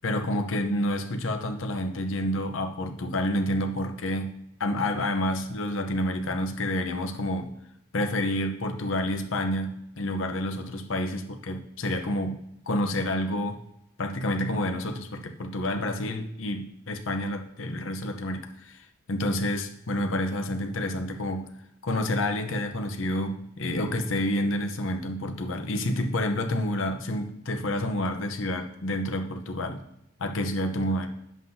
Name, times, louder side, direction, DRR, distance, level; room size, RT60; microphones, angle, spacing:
voice 1, 0.0-4.3 4.6-7.5 7.9-13.6 14.0-18.8 19.1-21.5 21.8-29.8 30.2-31.1, left 1 dB, 70° left, 5 dB, 0.8 m, -29 dB
9.4 x 7.4 x 2.7 m, 0.78 s
head